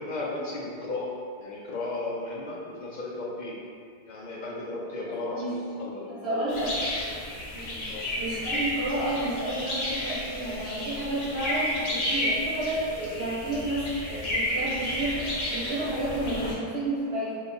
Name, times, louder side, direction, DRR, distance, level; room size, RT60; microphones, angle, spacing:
voice 1, 0.0-3.6 4.1-7.1 7.9-8.1, left 2 dB, 55° left, -4 dB, 0.6 m, -35 dB
voice 2, 6.1-6.7 7.5-7.9 8.1-15.2 15.5-17.4, right 1 dB, 85° right, -9 dB, 1.4 m, -31 dB
sound 1, 6.5-16.5, left 1 dB, 85° left, 0.9 m, -32 dB
2.8 x 2.2 x 3.9 m, 2.2 s
omnidirectional pair, 1.0 m